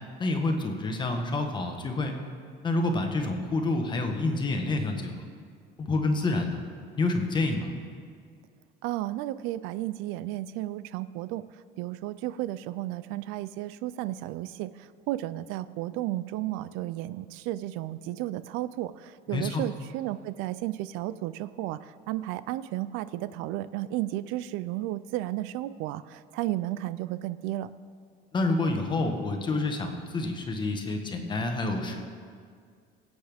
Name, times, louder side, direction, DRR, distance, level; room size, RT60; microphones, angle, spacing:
voice 1, 0.2-2.1 2.6-5.2 5.8-6.6 6.9-7.7 19.3-19.6 28.3-32.0, left 2 dB, 20° left, 4 dB, 1.2 m, -28 dB
voice 2, 8.8-27.7, right 15 dB, 85° right, 15 dB, 0.4 m, -33 dB
22.5 x 7.9 x 3.5 m, 2.1 s
cardioid pair, 155°, 20 cm